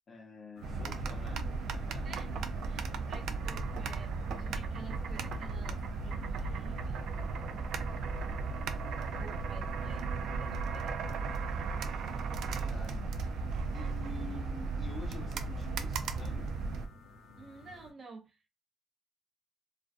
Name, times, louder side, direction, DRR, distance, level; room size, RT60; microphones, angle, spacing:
voice 1, 0.1-2.1 12.4-13.2 13.7-16.6, left 4 dB, 45° left, 0.5 m, -48 dB
sound 1, 0.6-17.9, left 2 dB, 90° left, 0.6 m, -54 dB
sound 2, 0.6-16.9, right 4 dB, 75° right, 0.3 m, -35 dB
voice 2, 2.6-4.1 4.4-7.8 9.1-12.8 17.4-18.5, right 4 dB, 55° right, 0.7 m, -52 dB
2.4 x 2.2 x 2.4 m
cardioid pair, 90°, 0 cm